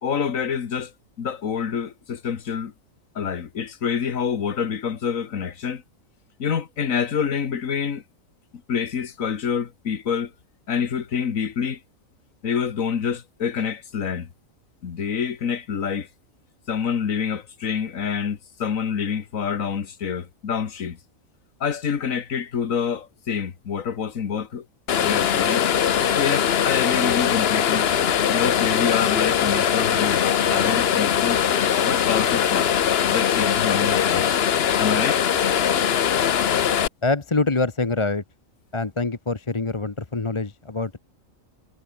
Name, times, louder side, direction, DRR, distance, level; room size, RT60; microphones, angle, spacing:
voice 1, 0.0-2.7 3.2-5.8 6.4-8.0 8.7-10.3 10.7-11.8 12.4-14.3 14.8-16.1 16.7-21.0 21.6-24.7 25.0-25.7 26.1-27.9 28.3-31.4 31.9-32.7 33.1-34.3 34.8-35.3, left 7 dB, 75° left, 1.9 m, -27 dB
sound 1, 24.9-36.9, left 8 dB, 55° left, 1.0 m, -21 dB
voice 2, 37.0-38.2 38.7-41.0, left 3 dB, 25° left, 1.1 m, -25 dB
omnidirectional pair, 1.4 m